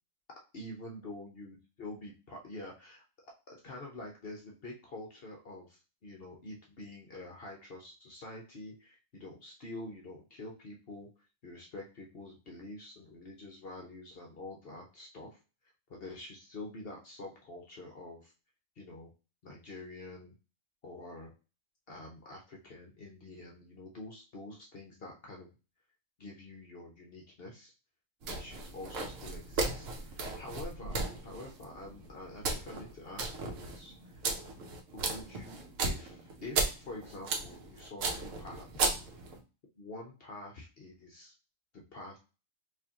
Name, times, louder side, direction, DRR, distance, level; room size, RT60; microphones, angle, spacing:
voice 1, 0.5-3.0 3.5-11.1 11.4-15.4 15.9-18.3 18.8-19.1 19.4-20.3 20.8-21.3 21.9-25.5 26.2-27.7 28.2-34.2 34.9-38.9 39.8-41.3 41.7-42.2, left 2 dB, 50° left, 0 dB, 1.0 m, -47 dB
sound 1, 28.2-39.4, right 3 dB, 90° right, 1.2 m, -36 dB
4.7 x 2.6 x 2.9 m, 0.32 s
omnidirectional pair, 1.3 m